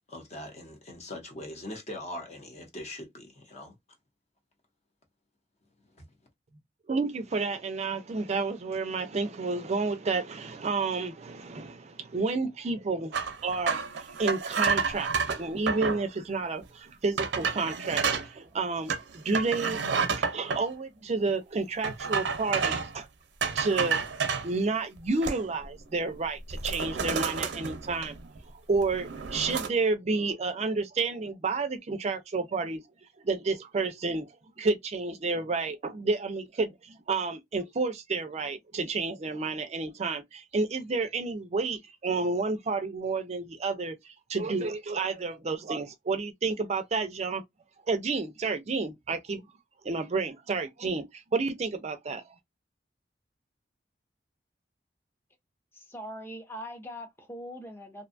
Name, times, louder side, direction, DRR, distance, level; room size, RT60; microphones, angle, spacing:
voice 1, 0.1-3.8 6.0-6.1, left 1 dB, 40° left, 0.9 m, -41 dB
voice 2, 6.9-23.1 23.5-24.0 24.4-28.1 28.7-32.8 33.2-34.3 34.6-47.4 47.9-49.4 49.8-52.2, right 3 dB, 40° right, 0.4 m, -30 dB
sound 1, 13.1-16.0 16.6-16.7 17.2-18.3 18.9-20.6 21.8-23.0 23.4-24.5 25.0-25.7 26.0-26.2 26.5-28.4 28.7-29.7, right 5 dB, 90° right, 0.5 m, -30 dB
voice 3, 55.7-58.1, equal, 15° left, 0.7 m, -41 dB
2.6 x 2.2 x 2.5 m
head